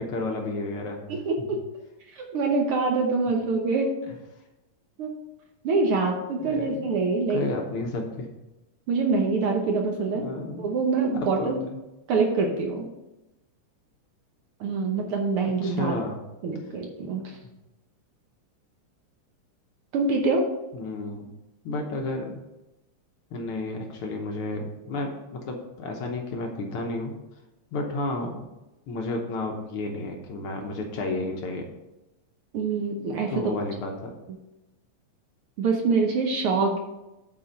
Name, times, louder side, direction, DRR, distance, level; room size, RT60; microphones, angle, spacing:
voice 1, 0.0-1.5 6.4-6.8 7.3-8.3 10.1-10.7 11.4-11.8 15.6-16.2 17.0-17.1 20.7-21.3 21.6-22.4 23.3-27.1 27.7-28.4 28.9-31.7 33.3-34.1, left 2 dB, 65° left, 2 dB, 1.5 m, -32 dB
voice 2, 1.1-1.6 2.1-4.0 5.0-5.1 5.6-7.4 8.9-10.3 10.6-11.6 12.1-12.9 14.6-15.9 16.4-17.4 19.9-20.5 32.5-33.4 35.6-36.8, right 4 dB, 70° right, 2 dB, 1.4 m, -25 dB
8.6 x 4.4 x 6.4 m, 0.98 s
omnidirectional pair, 3.5 m